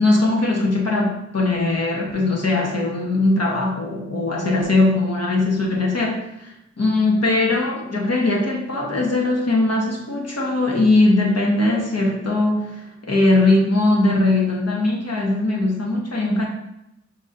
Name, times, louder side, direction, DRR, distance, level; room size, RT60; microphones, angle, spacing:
voice 1, 0.0-16.5, left 2 dB, 60° left, -1 dB, 1.1 m, -20 dB
4.9 x 2.8 x 3.8 m, 0.85 s
wide cardioid pair, 45°, 29 cm